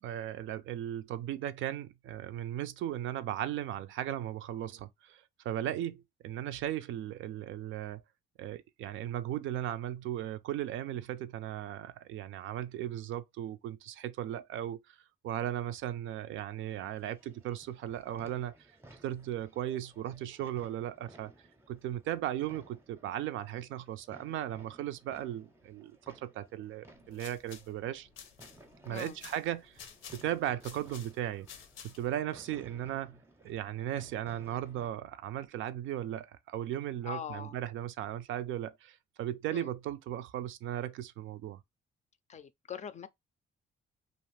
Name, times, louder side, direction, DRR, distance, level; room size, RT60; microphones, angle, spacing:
voice 1, 0.0-8.0 8.4-15.0 15.2-18.5 19.0-21.3 21.7-28.1 28.9-29.8 30.1-31.5 31.8-41.6, right 12 dB, 75° right, 0.4 m, -37 dB
sound 1, 16.6-34.9, right 1 dB, 10° right, 0.6 m, -59 dB
sound 2, 26.9-32.2, left 7 dB, 85° left, 0.6 m, -52 dB
voice 2, 37.0-37.6 39.5-39.7 42.3-43.1, left 8 dB, 35° left, 0.4 m, -42 dB
2.4 x 2.4 x 3.1 m
cardioid pair, 90°, 20 cm